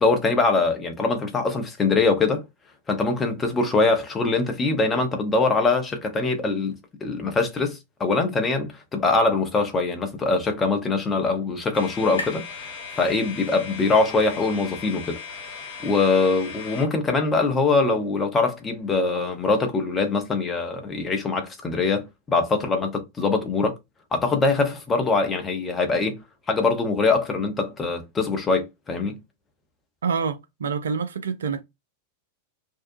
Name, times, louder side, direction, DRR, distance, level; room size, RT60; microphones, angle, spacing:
voice 1, 0.0-2.4 2.9-6.8 7.0-15.2 15.8-23.8 24.1-26.2 26.5-29.2, left 3 dB, 20° left, 0.8 m, -23 dB
sound 1, 9.8-13.6, left 3 dB, 75° left, 0.6 m, -42 dB
sound 2, 11.7-16.9, left 5 dB, 50° left, 0.9 m, -38 dB
voice 2, 30.0-31.6, right 6 dB, 65° right, 0.4 m, -27 dB
2.7 x 2.2 x 2.6 m
figure-of-eight pair, 90°, 0 cm